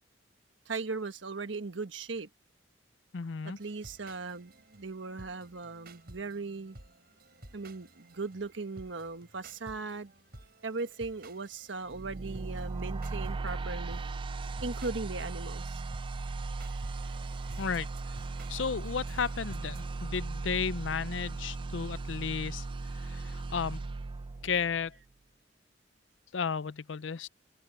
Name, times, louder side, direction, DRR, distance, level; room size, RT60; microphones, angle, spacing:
voice 1, 0.6-2.3 3.4-6.8 7.5-10.1 10.6-14.1 14.4-15.8, right 3 dB, 85° right, 1.4 m, -38 dB
voice 2, 3.1-3.6 17.6-17.9 18.5-22.7 22.9-23.8 24.4-24.9 26.3-27.3, left 6 dB, 85° left, 0.6 m, -33 dB
sound 1, 3.6-20.1, right 2 dB, 55° right, 5.4 m, -54 dB
sound 2, 11.9-25.0, right 3 dB, 25° right, 0.3 m, -37 dB
head